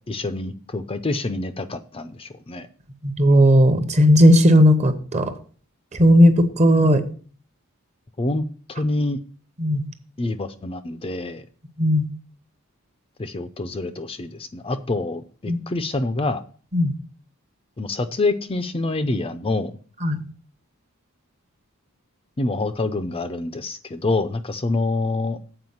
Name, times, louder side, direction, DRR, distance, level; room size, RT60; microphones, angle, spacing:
voice 1, 0.1-2.7 8.2-9.2 10.2-11.4 13.2-16.4 17.8-19.7 22.4-25.4, left 2 dB, 25° left, 10 dB, 0.5 m, -26 dB
voice 2, 3.0-5.3 6.0-7.0 9.6-9.9 11.8-12.1 15.5-15.6 16.7-16.9 20.0-20.2, equal, 30° right, 8 dB, 0.9 m, -15 dB
7.8 x 4.8 x 7.1 m, 0.42 s
head